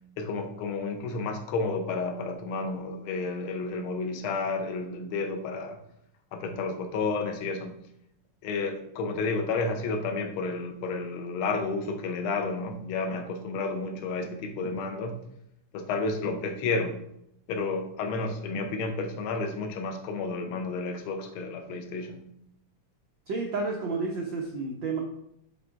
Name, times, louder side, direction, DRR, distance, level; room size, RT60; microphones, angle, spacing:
voice 1, 0.2-5.8 6.3-7.8 8.4-15.1 15.7-17.0 17.5-22.2, left 3 dB, 65° left, 5 dB, 1.4 m, -31 dB
voice 2, 23.3-25.0, right 3 dB, 90° right, 1 dB, 1.0 m, -31 dB
7.4 x 4.0 x 4.6 m, 0.74 s
omnidirectional pair, 3.4 m